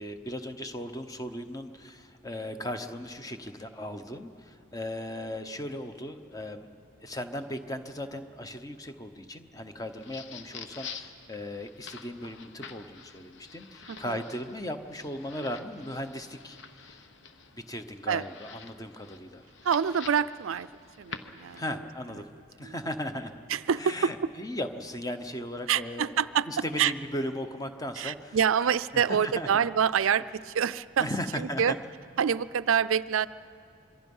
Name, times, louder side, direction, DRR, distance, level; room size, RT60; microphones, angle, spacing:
voice 1, 0.0-6.7 7.0-17.1 17.5-19.4 21.6-22.3 22.6-23.3 23.8-26.2 26.5-28.4 28.9-29.5 31.0-31.8, left 1 dB, 15° left, 8 dB, 0.9 m, -37 dB
sound 1, 9.8-21.8, left 6 dB, 60° left, 1.1 m, -47 dB
voice 2, 19.6-20.7 21.0-21.6 22.6-22.7 23.5-24.3 25.7-26.5 26.8-26.9 28.0-31.1 31.4-31.7 32.2-33.3, right 7 dB, 80° right, 16 dB, 0.4 m, -26 dB
26.5 x 23.0 x 5.5 m, 2.5 s
head